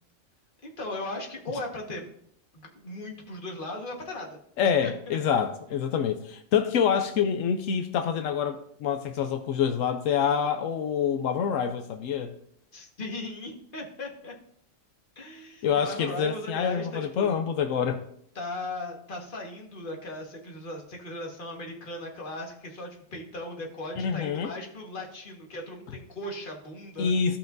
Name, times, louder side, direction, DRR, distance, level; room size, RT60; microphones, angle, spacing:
voice 1, 0.6-2.1 2.5-4.4 4.8-5.2 12.7-14.3 15.1-17.3 18.3-27.1, left 1 dB, 40° left, 1.6 m, -38 dB
voice 2, 4.6-12.3 15.6-18.0 24.0-24.5 27.0-27.4, left 7 dB, 85° left, 1.0 m, -26 dB
14.5 x 5.7 x 2.6 m
omnidirectional pair, 1.3 m